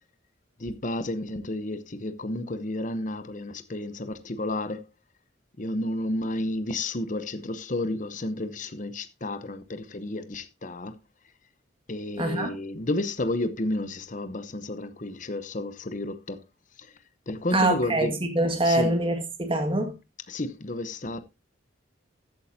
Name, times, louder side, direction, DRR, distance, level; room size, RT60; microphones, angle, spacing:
voice 1, 0.6-4.8 5.6-11.0 11.9-16.4 16.8-16.9 17.3-18.1 18.6-18.9 20.3-21.2, left 1 dB, 40° left, 0.8 m, -31 dB
voice 2, 12.2-12.5 17.5-19.9, right 1 dB, 25° right, 1.9 m, -24 dB
14.5 x 8.6 x 2.7 m
head